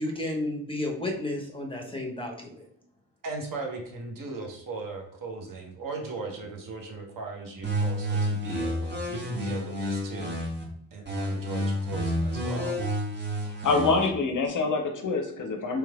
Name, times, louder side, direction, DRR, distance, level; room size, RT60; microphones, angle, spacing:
voice 1, 0.0-2.7, left 1 dB, 10° left, 1 dB, 0.8 m, -32 dB
voice 2, 3.2-10.4 10.9-12.8, right 3 dB, 45° right, 1 dB, 1.0 m, -38 dB
sound 1, 7.6-10.6 11.0-14.1, equal, 20° right, 1.3 m, -29 dB
voice 3, 13.6-15.8, left 4 dB, 40° left, 4 dB, 0.7 m, -25 dB
3.2 x 3.1 x 2.3 m, 0.67 s
hypercardioid pair, 40°, 48 cm